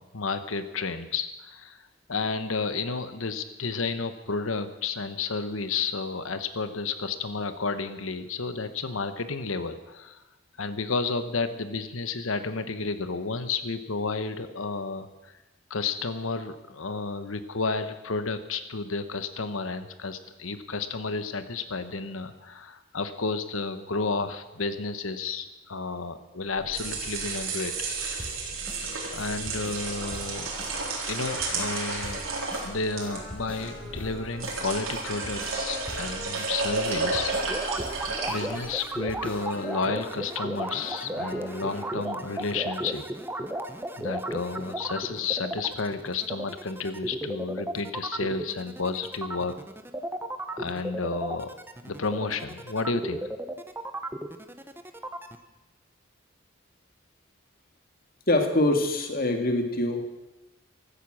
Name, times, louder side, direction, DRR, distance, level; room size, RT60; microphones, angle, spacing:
voice 1, 0.0-1.8 2.1-10.2 10.6-15.3 15.7-27.7 29.1-30.5 31.1-32.2 32.6-37.3 38.3-43.0 44.0-49.6 50.5-51.5 51.8-53.2, left 4 dB, 85° left, 11 dB, 1.1 m, -31 dB
sound 1, 26.5-38.9, right 3 dB, 90° right, 4.1 m, -32 dB
sound 2, 28.2-42.0, equal, 5° left, 3.9 m, -42 dB
sound 3, 37.5-55.4, right 1 dB, 10° right, 0.9 m, -34 dB
voice 2, 58.3-60.1, left 1 dB, 45° left, 5 dB, 2.1 m, -24 dB
16.0 x 13.5 x 6.3 m, 1.0 s
head